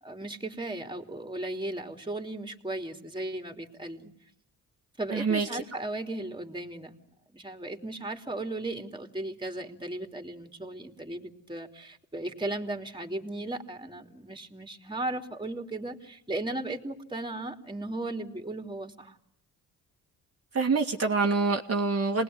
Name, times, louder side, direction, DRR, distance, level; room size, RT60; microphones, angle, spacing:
voice 1, 0.0-4.1 5.0-6.9 7.3-19.2, right 2 dB, 15° right, 5 dB, 3.2 m, -36 dB
voice 2, 5.1-5.5 20.5-22.2, right 4 dB, 40° right, 1 dB, 2.1 m, -26 dB
27.5 x 20.0 x 9.5 m, 0.74 s
cardioid pair, 75°, 35 cm